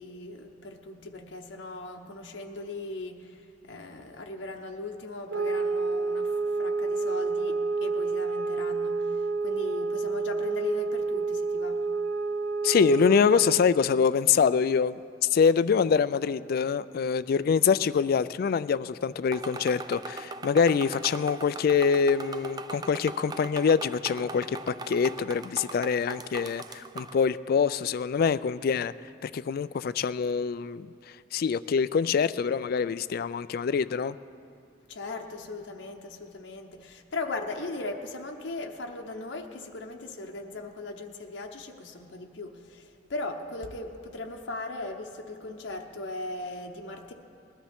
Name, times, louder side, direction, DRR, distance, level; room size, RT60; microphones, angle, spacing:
voice 1, 0.0-11.8 34.9-47.1, left 2 dB, 75° left, 2 dB, 0.9 m, -38 dB
sound 1, 5.3-13.7, right 3 dB, 90° right, 0.7 m, -29 dB
voice 2, 12.6-15.0 15.3-28.9 29.2-30.9 31.3-34.2, left 6 dB, 55° left, 16 dB, 0.3 m, -25 dB
sound 2, 19.3-27.2, right 3 dB, 20° right, 0.4 m, -40 dB
20.5 x 12.5 x 3.6 m, 2.5 s
head